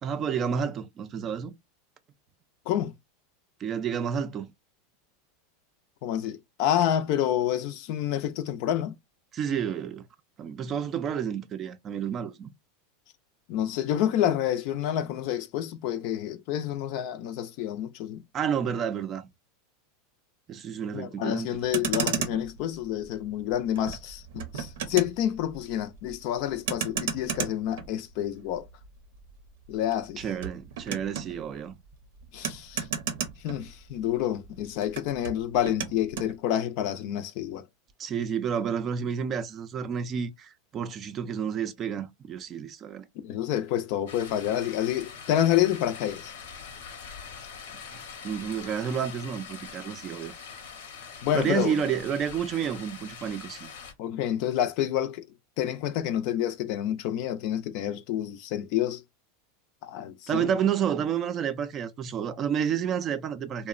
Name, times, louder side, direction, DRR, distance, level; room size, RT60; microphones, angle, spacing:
voice 1, 0.0-1.5 3.6-4.5 9.3-10.0 10.4-12.5 18.3-19.3 20.5-21.5 30.2-31.7 38.0-43.1 48.2-50.3 51.3-53.7 60.3-63.7, right 8 dB, 30° right, 0.4 m, -30 dB
voice 2, 6.0-8.9 13.5-18.2 20.9-28.7 29.7-30.2 32.3-32.9 33.4-37.6 43.2-46.3 51.2-51.7 54.0-55.3 55.6-59.0 59.8-60.5, left 11 dB, 55° left, 0.4 m, -28 dB
Motor vehicle (road), 21.6-34.2 34.4-36.3, right 7 dB, 75° right, 0.7 m, -35 dB
sound 1, 44.1-53.9, left 6 dB, 85° left, 0.8 m, -43 dB
2.8 x 2.1 x 2.4 m
supercardioid pair, 135°, 0 cm